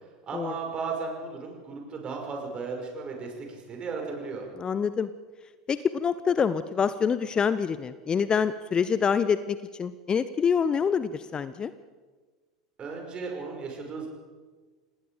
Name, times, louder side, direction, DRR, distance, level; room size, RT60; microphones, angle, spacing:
voice 1, 0.2-4.5 12.8-14.1, right 4 dB, 30° right, 1 dB, 6.0 m, -35 dB
voice 2, 4.6-5.1 5.7-11.7, left 6 dB, 25° left, 14 dB, 0.7 m, -26 dB
27.5 x 19.0 x 5.1 m, 1.4 s
figure-of-eight pair, 80°, 3 cm